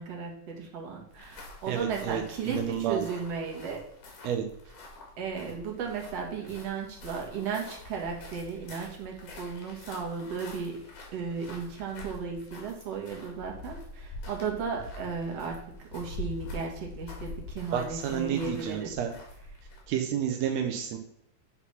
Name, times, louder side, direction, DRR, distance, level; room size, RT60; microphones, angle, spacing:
voice 1, 0.0-3.8 5.2-10.8 11.1-18.9, right 5 dB, 55° right, 0 dB, 2.5 m, -35 dB
sound 1, 1.1-19.9, left 2 dB, 65° left, 3.6 m, -45 dB
voice 2, 1.7-3.1 4.2-4.4 17.7-19.1 19.9-21.0, right 9 dB, 75° right, 4 dB, 1.6 m, -30 dB
9.6 x 4.0 x 5.7 m, 0.72 s
omnidirectional pair, 3.8 m